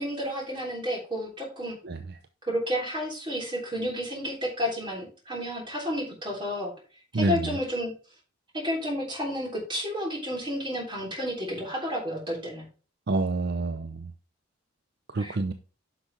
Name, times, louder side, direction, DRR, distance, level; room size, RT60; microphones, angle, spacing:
voice 1, 0.0-1.8 2.4-6.7 7.1-7.9 8.5-12.7 15.2-15.5, equal, 25° right, 3.3 m, -31 dB
voice 2, 7.1-7.5 13.1-14.1 15.1-15.5, right 3 dB, 50° right, 0.5 m, -27 dB
9.8 x 5.9 x 3.4 m
head